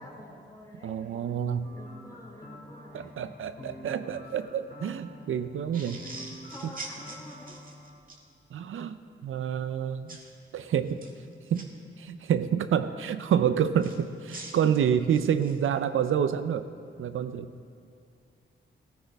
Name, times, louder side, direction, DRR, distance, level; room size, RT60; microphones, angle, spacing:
voice 1, 0.0-1.4 1.7-3.8 5.7-7.7, left 1 dB, 15° left, -2 dB, 2.9 m, -50 dB
voice 2, 0.8-1.7 2.9-6.0 6.6-6.7 8.5-10.2 10.5-11.0 11.5-11.7 12.0-16.6 17.0-17.5, right 8 dB, 80° right, 11 dB, 0.5 m, -28 dB
sound 1, 1.6-8.0, equal, 45° left, 2.8 m, -47 dB
sound 2, 5.7-8.2 10.1-10.3 10.9-11.6 13.8-15.7, right 2 dB, 45° right, 1.7 m, -44 dB
16.0 x 14.0 x 3.5 m, 2.4 s
cardioid pair, 85°, 21 cm